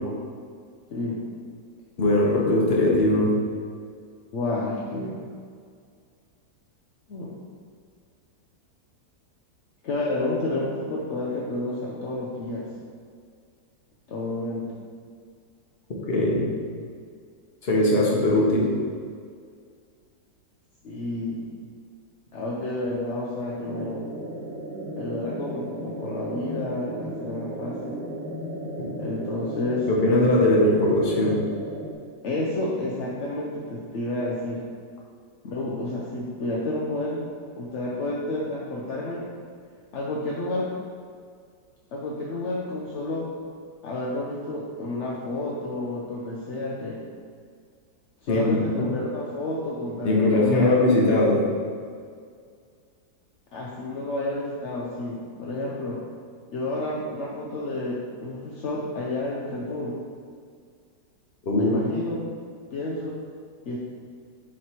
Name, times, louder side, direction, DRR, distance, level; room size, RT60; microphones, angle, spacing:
voice 1, 2.0-3.3 16.1-16.5 17.6-18.7 29.9-31.4 48.3-48.9 50.0-51.4 61.5-61.7, left 1 dB, 40° left, -3 dB, 1.1 m, -20 dB
voice 2, 4.3-5.2 7.1-7.3 9.8-12.7 14.1-14.7 20.8-21.4 22.3-24.1 25.0-28.0 29.0-29.9 32.2-34.6 35.4-37.2 37.6-39.3 39.9-40.7 41.9-43.3 43.8-47.0 48.2-50.9 53.5-56.0 56.5-60.0 61.5-62.2 62.7-63.1 63.6-63.8, left 2 dB, 55° left, -4 dB, 0.8 m, -30 dB
sound 1, 23.6-31.9, right 1 dB, 70° right, 1.4 m, -35 dB
7.4 x 3.3 x 4.4 m, 2.1 s
omnidirectional pair, 1.9 m